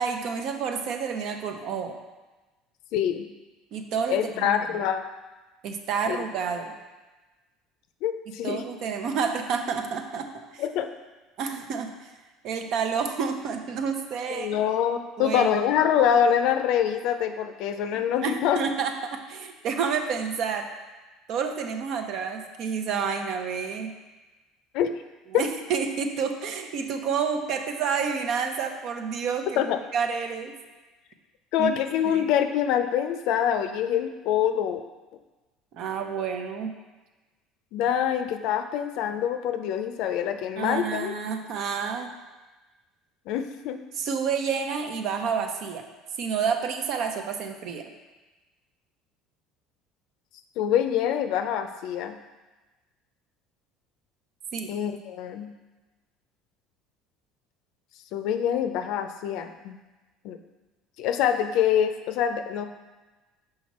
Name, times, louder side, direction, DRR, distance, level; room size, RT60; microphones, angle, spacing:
voice 1, 0.0-2.0 3.7-4.6 5.6-6.7 8.4-10.3 10.5-10.6 11.4-12.1 12.4-14.6 15.2-15.5 17.9-20.7 21.3-23.9 25.3-29.6 29.9-30.5 31.6-31.7 32.0-32.3 35.7-36.7 40.6-42.1 44.0-45.8 46.2-47.8 54.5-54.7, right 6 dB, 60° right, 5 dB, 0.7 m, -29 dB
voice 2, 2.9-3.3 4.1-5.1 6.1-6.2 8.0-8.6 10.6-10.9 14.3-18.6 24.7-24.9 29.6-29.8 31.5-34.8 37.7-41.1 43.3-43.8 50.6-52.1 54.7-55.5 58.1-59.8 60.2-60.4 61.0-62.7, left 9 dB, 70° left, 8 dB, 0.5 m, -25 dB
5.9 x 4.8 x 4.2 m, 1.2 s
supercardioid pair, 115°, 0 cm